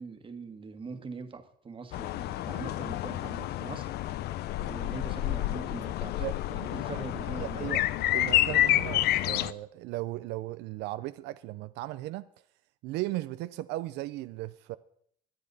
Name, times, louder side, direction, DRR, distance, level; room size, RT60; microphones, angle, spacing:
voice 1, 0.0-3.9 4.7-7.7, right 4 dB, 30° right, 1.5 m, -42 dB
sound 1, 1.9-9.5, left 14 dB, 75° left, 0.5 m, -29 dB
voice 2, 7.4-7.8 8.1-12.3 12.8-14.8, right 17 dB, 90° right, 0.5 m, -36 dB
21.5 x 8.6 x 4.1 m
cardioid pair, 110°, 17 cm